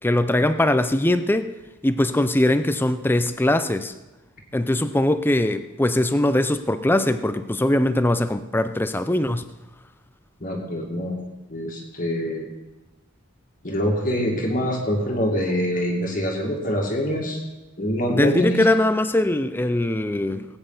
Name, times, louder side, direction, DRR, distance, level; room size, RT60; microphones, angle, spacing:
voice 1, 0.0-1.5 1.8-3.9 4.5-9.4 18.1-20.5, left 1 dB, 10° left, 11 dB, 0.5 m, -21 dB
voice 2, 10.4-11.2 11.5-12.5 13.6-17.4 17.8-18.6, equal, 40° left, -1 dB, 1.9 m, -25 dB
19.5 x 9.0 x 3.9 m, 1.0 s
head